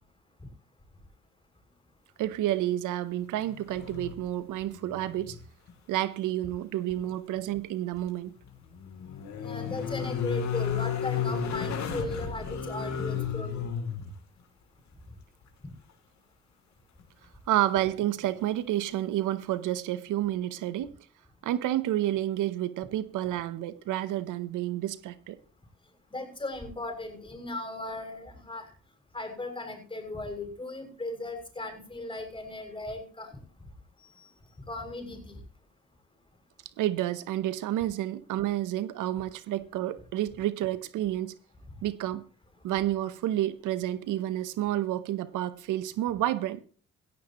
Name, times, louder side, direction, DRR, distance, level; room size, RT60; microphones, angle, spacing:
voice 1, 2.2-5.4 5.9-8.3 17.5-20.9 21.4-25.4 36.8-41.4 41.8-42.3 42.6-46.6, right 13 dB, 85° right, 0.8 m, -30 dB
sound 1, 3.3-4.3 4.6-5.4 5.7-5.8 8.3-14.1 17.0-17.1, left 7 dB, 65° left, 3.0 m, -33 dB
voice 2, 9.4-13.6 26.1-28.7 29.1-33.3 34.7-35.3, left 2 dB, 15° left, 6.7 m, -37 dB
17.0 x 15.0 x 3.0 m
cardioid pair, 90°, 30 cm